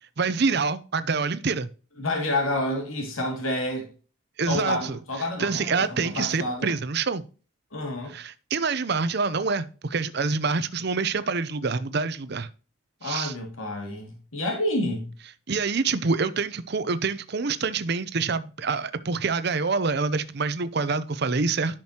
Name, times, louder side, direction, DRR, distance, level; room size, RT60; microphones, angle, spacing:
voice 1, 0.2-1.7 4.4-5.0 5.4-7.2 8.1-12.5 13.0-13.3 15.5-21.8, right 4 dB, 50° right, 0.6 m, -26 dB
voice 2, 2.0-3.9 4.5-6.7 7.7-8.2 13.0-15.1, left 1 dB, 80° left, 2.5 m, -29 dB
10.5 x 6.1 x 2.9 m
head